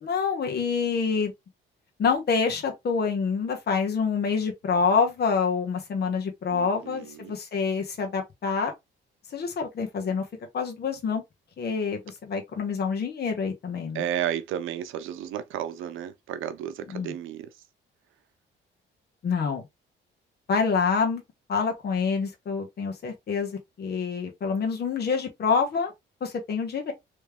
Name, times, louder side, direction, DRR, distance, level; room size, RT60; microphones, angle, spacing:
voice 1, 0.0-1.3 2.0-8.7 9.3-10.2 10.5-11.2 11.6-14.1 16.9-17.1 19.2-19.6 20.5-21.2 21.5-25.9 26.2-26.9, left 5 dB, 55° left, 1.3 m, -27 dB
voice 2, 6.5-7.3 13.9-17.5, right 10 dB, 85° right, 0.6 m, -33 dB
3.2 x 3.1 x 3.4 m
cardioid pair, 90°, 20 cm